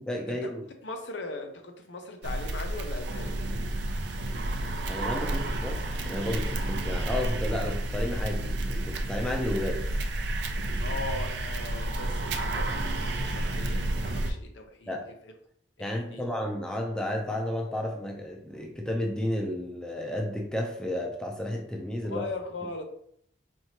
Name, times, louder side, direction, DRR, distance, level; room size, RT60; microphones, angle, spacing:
voice 1, 0.0-0.6 4.9-9.9 14.9-15.1 15.8-22.2, left 1 dB, 5° left, 1 dB, 0.5 m, -32 dB
voice 2, 0.8-3.4 10.8-15.0 15.8-16.2 22.0-22.8, left 3 dB, 75° left, 4 dB, 0.6 m, -39 dB
sound 1, 2.2-14.3, right 1 dB, 60° right, 0.4 m, -30 dB
4.5 x 2.7 x 2.9 m, 0.67 s
head